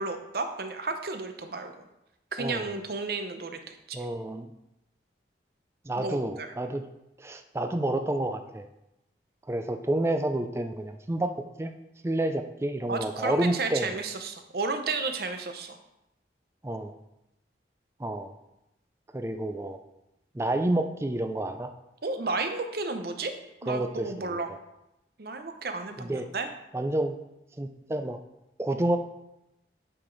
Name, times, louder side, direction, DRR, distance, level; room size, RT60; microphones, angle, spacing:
voice 1, 0.0-1.8 2.3-4.0 6.0-6.5 12.9-15.8 22.0-23.3 23.6-24.5 25.2-26.5, right 3 dB, 60° right, 7 dB, 0.7 m, -32 dB
voice 2, 2.4-2.7 3.9-4.5 5.9-6.8 7.2-8.6 9.5-11.7 12.0-13.9 16.6-16.9 18.0-18.3 19.1-19.8 20.3-21.7 23.7-24.4 26.0-26.3 26.7-27.2 27.6-28.2 28.6-29.0, right 1 dB, 15° right, 7 dB, 0.4 m, -29 dB
8.8 x 4.9 x 3.9 m, 0.90 s
head